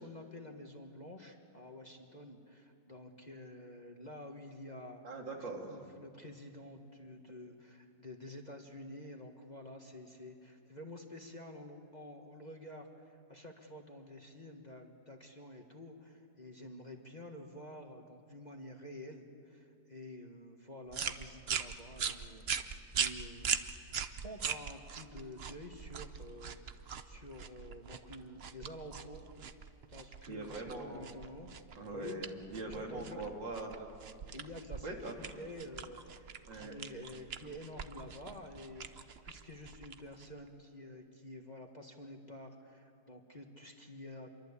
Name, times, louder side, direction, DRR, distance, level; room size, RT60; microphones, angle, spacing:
voice 1, 0.0-5.0 5.7-23.5 24.2-29.3 29.9-31.5 31.9-32.2 32.7-33.2 34.3-34.9 35.3-44.3, left 1 dB, 25° left, 2 dB, 1.7 m, -49 dB
voice 2, 5.0-5.8 30.3-31.1 31.8-33.9 34.8-35.3 36.5-36.8, right 2 dB, 80° right, 0 dB, 3.8 m, -42 dB
sound 1, 20.9-40.5, right 7 dB, 50° right, 0.8 m, -41 dB
27.0 x 23.5 x 8.5 m, 2.4 s
omnidirectional pair, 2.0 m